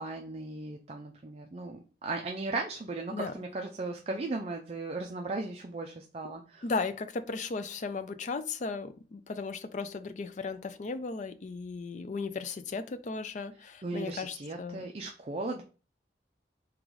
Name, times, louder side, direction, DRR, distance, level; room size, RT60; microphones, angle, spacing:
voice 1, 0.0-6.6 13.8-15.6, right 3 dB, 35° right, 0.4 m, -37 dB
voice 2, 6.6-14.8, left 4 dB, 40° left, 0.4 m, -36 dB
3.8 x 3.0 x 4.6 m
head